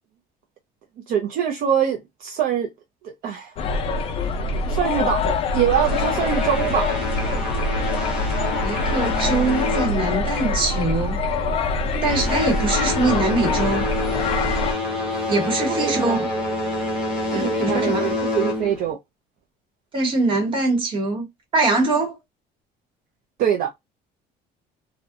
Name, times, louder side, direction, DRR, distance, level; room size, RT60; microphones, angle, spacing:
voice 1, 1.1-2.7 3.0-3.6 4.7-7.0 15.7-16.2 17.3-19.0 23.4-23.7, right 9 dB, 55° right, 0.5 m, -24 dB
sound 1, 3.6-14.7, left 3 dB, 35° left, 0.4 m, -24 dB
sound 2, 5.7-10.6 10.9-11.3 11.8-18.9, left 2 dB, 5° right, 0.8 m, -27 dB
voice 2, 8.6-11.2 12.0-13.9 15.3-16.3 17.3-18.1 19.9-21.3 21.5-22.2, right 2 dB, 30° right, 1.0 m, -23 dB
2.6 x 2.1 x 2.4 m
cardioid pair, 170°, 17 cm